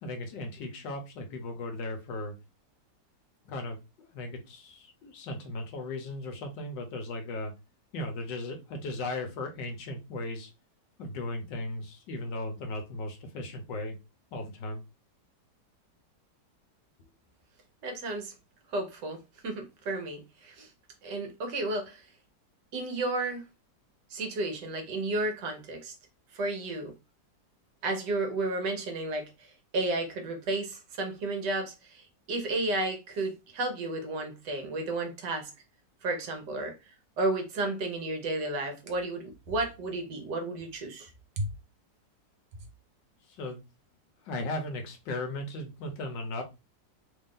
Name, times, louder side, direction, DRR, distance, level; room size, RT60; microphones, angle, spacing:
voice 1, 0.0-2.3 3.4-7.5 7.9-10.5 11.0-14.0 14.3-14.8 43.3-43.6 44.2-46.4, left 2 dB, 75° left, 1.5 m, -37 dB
voice 2, 17.8-18.3 18.7-19.2 19.4-20.7 21.0-22.0 22.7-23.4 24.1-25.9 26.3-26.9 27.8-35.5 36.0-36.7 37.2-41.1 41.4-41.5, right 2 dB, 70° right, 1.5 m, -32 dB
3.6 x 2.6 x 3.6 m
omnidirectional pair, 2.0 m